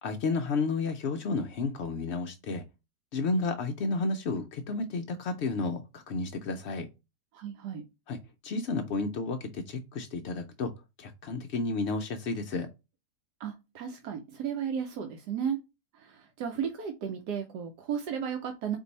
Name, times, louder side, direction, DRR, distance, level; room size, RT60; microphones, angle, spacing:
voice 1, 0.0-2.6 3.1-6.9 8.1-8.2 8.4-10.7 11.0-12.7, left 3 dB, 75° left, 0.6 m, -31 dB
voice 2, 7.3-7.8 13.4-15.6 15.9-18.8, right 8 dB, 80° right, 1.3 m, -34 dB
4.4 x 2.7 x 3.9 m
omnidirectional pair, 1.7 m